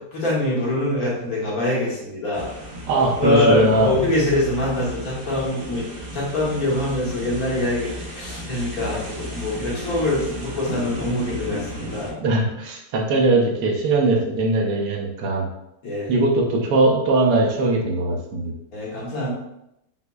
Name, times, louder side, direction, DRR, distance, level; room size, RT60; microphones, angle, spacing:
voice 1, 0.1-2.5 3.2-5.9 6.1-12.2 15.8-16.1 18.7-19.3, left 1 dB, 65° left, -5 dB, 1.5 m, -24 dB
sound 1, 2.3-12.1, equal, 55° right, 0.6 m, -34 dB
voice 2, 2.9-4.0 12.2-15.5 16.1-18.5, right 2 dB, 80° right, 0 dB, 1.2 m, -20 dB
5.8 x 2.1 x 2.2 m, 0.84 s
omnidirectional pair, 1.7 m